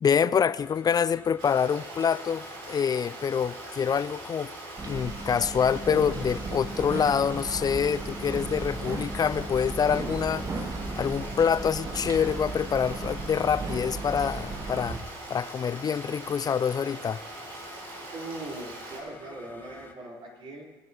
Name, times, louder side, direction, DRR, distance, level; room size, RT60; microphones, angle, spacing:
voice 1, 0.0-4.5 4.9-10.5 11.0-15.0 15.3-17.2, left 7 dB, 35° left, 0.4 m, -26 dB
sound 1, 0.6-19.9, left 3 dB, 15° left, 1.4 m, -50 dB
Stream, 1.4-19.0, right 2 dB, 80° right, 3.1 m, -42 dB
sound 2, 4.8-15.0, right 3 dB, 30° right, 1.1 m, -35 dB
voice 2, 18.1-20.6, right 2 dB, 50° right, 4.1 m, -40 dB
22.0 x 10.5 x 3.0 m
hypercardioid pair, 65°, 12 cm